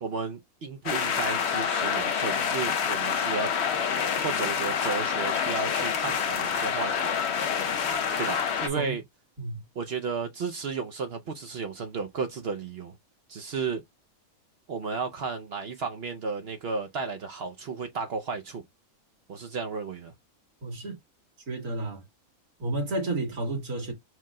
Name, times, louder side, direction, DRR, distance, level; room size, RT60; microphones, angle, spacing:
voice 1, 0.0-3.6 4.2-7.1 8.2-9.0 9.8-13.0 13.3-13.8 14.7-18.6 19.3-20.1, right 5 dB, 60° right, 0.6 m, -33 dB
sound 1, 0.9-8.7, left 7 dB, 55° left, 0.9 m, -27 dB
voice 2, 20.6-21.0 21.5-22.0 22.6-23.9, right 2 dB, 85° right, 2.1 m, -31 dB
4.6 x 2.1 x 3.6 m
omnidirectional pair, 1.5 m